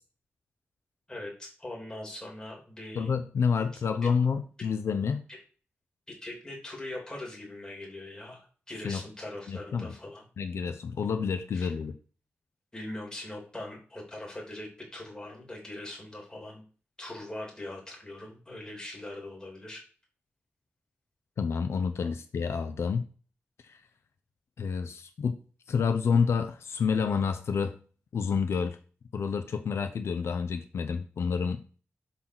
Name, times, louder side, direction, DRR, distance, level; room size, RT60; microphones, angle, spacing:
voice 1, 1.1-3.1 3.7-3.8 5.3-5.4 6.2-10.2 11.5-11.7 12.7-16.6 17.0-19.8 22.0-22.1, left 1 dB, 20° left, -2 dB, 3.1 m, -41 dB
voice 2, 2.9-5.2 8.8-9.0 9.5-9.9 10.4-12.0 21.4-23.1 23.7-23.8 24.6-25.4 25.7-27.8 28.1-28.8 29.1-31.6, left 6 dB, 80° left, 9 dB, 0.6 m, -29 dB
8.3 x 4.0 x 6.1 m, 0.39 s
wide cardioid pair, 145°, 4 cm